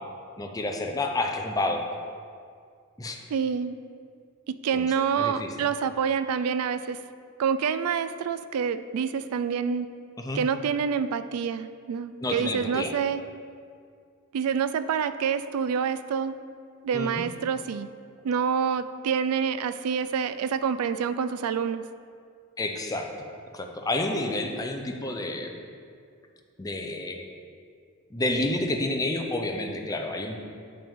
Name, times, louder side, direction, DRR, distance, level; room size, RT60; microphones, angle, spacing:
voice 1, 0.4-1.8 3.0-3.2 4.7-4.9 5.2-5.5 10.2-10.4 12.2-12.9 16.9-17.2 22.6-23.1 23.5-25.5 26.6-27.2 28.1-30.4, left 2 dB, 15° left, 3 dB, 0.5 m, -29 dB
voice 2, 3.3-3.7 4.5-7.0 7.4-9.9 10.3-13.2 14.3-16.3 16.8-17.9 18.2-21.8, right 7 dB, 80° right, 12 dB, 0.3 m, -27 dB
8.7 x 5.7 x 3.6 m, 2.2 s
head